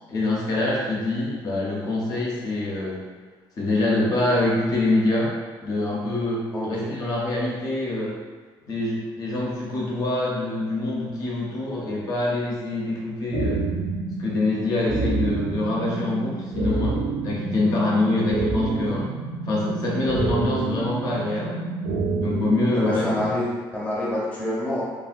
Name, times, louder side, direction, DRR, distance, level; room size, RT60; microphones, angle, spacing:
voice 1, 0.1-3.0 3.6-8.2 8.7-13.6 14.2-19.1 19.4-21.6 22.2-23.4, left 2 dB, 45° left, -4 dB, 0.7 m, -25 dB
voice 2, 6.5-6.9 22.7-24.8, left 1 dB, 15° left, -6 dB, 0.8 m, -27 dB
sound 1, 13.3-23.3, right 3 dB, 75° right, 0.6 m, -28 dB
3.3 x 2.2 x 2.5 m, 1.4 s
cardioid pair, 150°, 9 cm